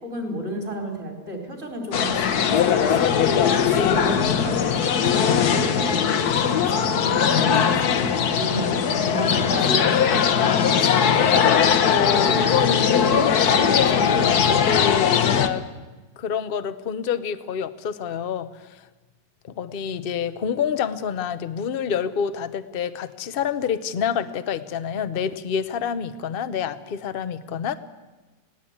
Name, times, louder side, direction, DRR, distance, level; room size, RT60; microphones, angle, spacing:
voice 1, 0.0-3.2 3.6-6.1 6.4-11.4, right 1 dB, 35° right, 2 dB, 4.3 m, -32 dB
sound 1, 1.9-15.5, left 7 dB, 65° left, 1.5 m, -20 dB
voice 2, 11.9-15.6 16.2-18.5 19.4-27.7, left 7 dB, 40° left, 13 dB, 0.8 m, -27 dB
20.5 x 17.0 x 8.6 m, 1.2 s
omnidirectional pair, 1.8 m